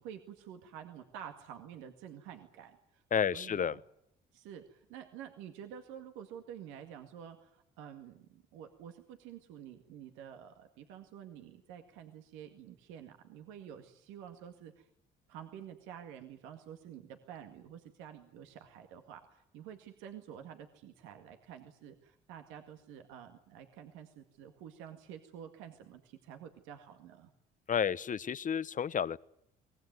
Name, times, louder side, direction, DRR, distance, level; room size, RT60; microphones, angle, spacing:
voice 1, 0.0-3.0 3.3-3.8 4.3-14.9 15.3-27.3, right 9 dB, 85° right, 5 dB, 2.0 m, -49 dB
voice 2, 3.1-3.8 27.7-29.2, left 7 dB, 40° left, 17 dB, 0.9 m, -31 dB
23.5 x 19.0 x 9.5 m, 0.76 s
supercardioid pair, 65°, 20 cm